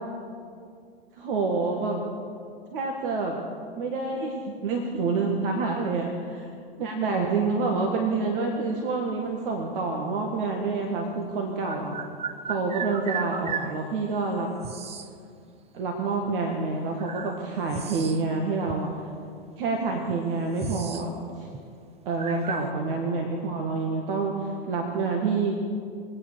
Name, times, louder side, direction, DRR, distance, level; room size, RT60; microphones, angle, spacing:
voice 1, 1.2-2.0 2.7-3.4 3.8-6.5 6.8-11.9 12.4-14.5 15.7-18.9 19.6-21.1 21.4-21.5 22.1-25.6, right 3 dB, 60° right, 2 dB, 2.0 m, -27 dB
sound 1, 10.4-10.5 11.6-13.8 14.6-15.1 16.2-16.4 17.0-18.4 18.7-18.8 19.6-19.7 20.0-21.1 21.4-21.6 22.2-22.7, right 7 dB, 20° right, 0.9 m, -35 dB
22.0 x 9.2 x 6.5 m, 2.3 s
hypercardioid pair, 95°, 30 cm